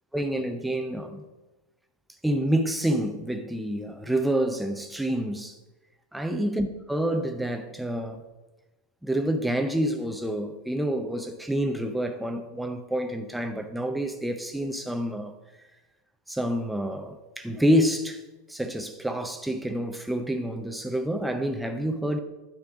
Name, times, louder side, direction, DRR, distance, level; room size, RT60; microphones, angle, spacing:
voice 1, 0.1-1.2 2.2-5.6 6.1-8.2 9.0-15.3 16.3-18.2 18.5-22.2, right 1 dB, 5° right, 0.5 m, -28 dB
9.5 x 3.4 x 5.9 m
figure-of-eight pair, 90°, 0 cm